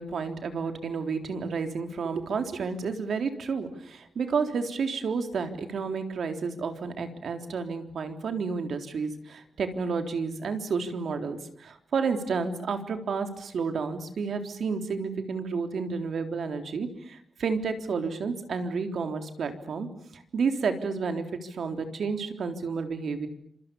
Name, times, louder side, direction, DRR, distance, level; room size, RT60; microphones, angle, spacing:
voice 1, 0.0-19.9 20.1-23.3, right 5 dB, 80° right, 6 dB, 3.7 m, -31 dB
30.0 x 27.0 x 7.1 m, 0.64 s
wide cardioid pair, 135°, 0 cm